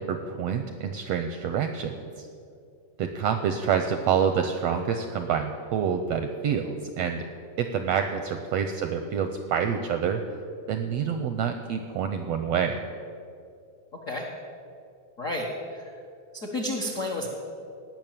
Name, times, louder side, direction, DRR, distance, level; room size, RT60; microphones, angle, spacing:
voice 1, 0.0-2.3 3.0-7.3 7.6-10.2 10.7-12.8, right 7 dB, 80° right, 7 dB, 1.4 m, -27 dB
voice 2, 15.2-15.9 16.3-17.3, left 1 dB, 75° left, 1 dB, 0.7 m, -31 dB
17.5 x 6.2 x 8.9 m, 2.4 s
omnidirectional pair, 3.6 m